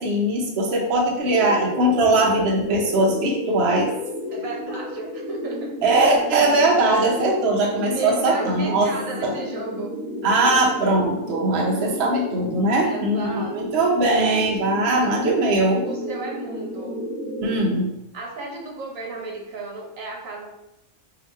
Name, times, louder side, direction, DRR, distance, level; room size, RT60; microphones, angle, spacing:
voice 1, 0.0-3.9 5.8-8.9 9.2-9.3 10.2-13.3 13.5-15.8 17.4-17.9, right 2 dB, 55° right, -2 dB, 0.8 m, -20 dB
sound 1, 1.2-17.6, equal, 20° left, 1.4 m, -32 dB
voice 2, 4.3-5.7 7.1-7.4 7.9-9.9 12.8-13.5 14.2-14.8 15.8-17.0 18.1-20.5, right 2 dB, 70° right, -1 dB, 1.2 m, -33 dB
2.9 x 2.8 x 4.4 m, 0.87 s
omnidirectional pair, 1.4 m